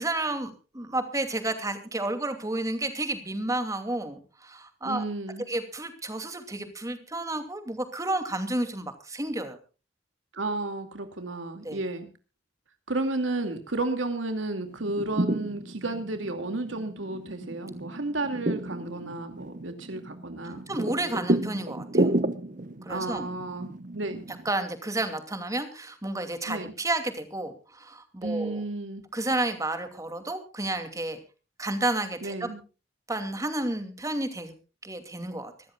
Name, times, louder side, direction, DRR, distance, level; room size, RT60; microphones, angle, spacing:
voice 1, 0.0-5.0 5.5-9.6 11.6-11.8 20.4-22.1 22.8-23.3 24.4-28.6 29.1-31.2 31.6-32.5 33.1-34.5 34.8-35.5, right 2 dB, 15° right, 7 dB, 2.6 m, -31 dB
voice 2, 4.8-5.4 10.3-12.1 12.9-20.6 22.9-24.2 26.5-26.7 28.2-29.0 32.2-32.6, right 2 dB, 85° right, 7 dB, 2.3 m, -32 dB
sound 1, 14.7-24.5, right 1 dB, 45° right, 1.0 m, -31 dB
25.5 x 14.0 x 2.4 m, 0.34 s
head